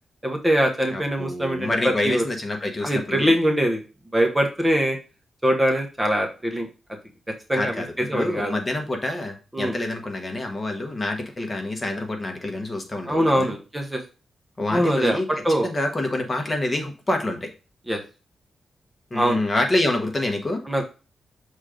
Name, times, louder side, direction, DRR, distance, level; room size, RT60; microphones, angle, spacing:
voice 1, 0.2-2.2 2.8-3.8 4.1-5.0 5.4-6.7 7.5-8.5 9.5-9.7 13.1-14.0 14.7-15.2 15.4-15.7 17.9-18.0 19.1-19.4 20.7-20.8, equal, 10° right, 2 dB, 1.0 m, -22 dB
voice 2, 0.9-3.3 7.5-13.5 14.6-15.3 15.6-17.5 19.1-20.6, left 1 dB, 20° left, 4 dB, 1.1 m, -27 dB
6.2 x 3.8 x 5.0 m, 0.33 s
wide cardioid pair, 150°, 0 cm